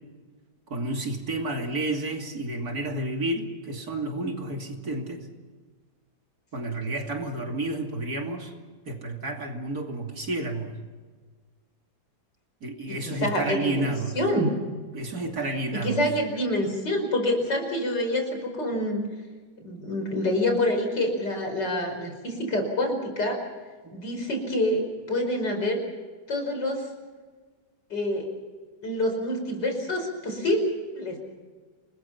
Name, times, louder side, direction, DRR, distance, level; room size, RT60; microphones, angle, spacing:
voice 1, 0.7-5.3 6.5-8.5 8.9-10.8 12.6-14.2 14.9-16.0 23.8-23.9, right 2 dB, 55° right, 2 dB, 3.2 m, -31 dB
voice 2, 12.9-14.5 15.7-19.0 19.6-23.4 23.9-25.8 26.3-26.9 27.9-28.3 28.8-30.6 31.0-31.2, left 1 dB, 70° left, 4 dB, 5.7 m, -27 dB
29.5 x 20.5 x 5.8 m, 1.4 s
omnidirectional pair, 1.9 m